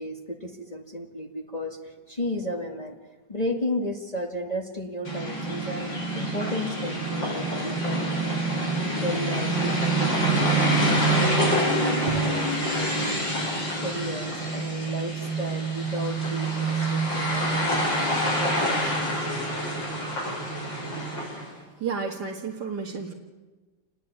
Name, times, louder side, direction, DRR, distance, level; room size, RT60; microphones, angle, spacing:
voice 1, 0.0-3.0 3.3-8.1 8.8-10.5 10.8-19.1, left 1 dB, 20° left, 2 dB, 2.2 m, -34 dB
sound 1, 5.0-21.5, right 1 dB, 75° left, 7.4 m, -26 dB
voice 2, 21.8-23.1, right 5 dB, 60° right, -1 dB, 2.4 m, -31 dB
28.0 x 20.5 x 9.6 m, 1.2 s
omnidirectional pair, 2.0 m